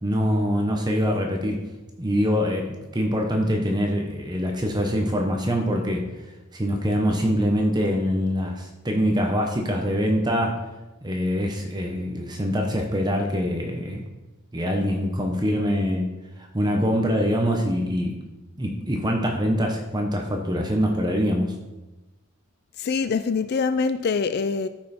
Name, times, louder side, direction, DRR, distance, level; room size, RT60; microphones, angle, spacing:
voice 1, 0.0-1.6 2.0-6.1 6.5-10.7 11.0-14.0 14.5-18.2 18.6-21.5, equal, 20° right, 1.0 m, -24 dB
voice 2, 22.8-24.7, left 5 dB, 50° left, 0.4 m, -24 dB
13.5 x 5.5 x 4.3 m
head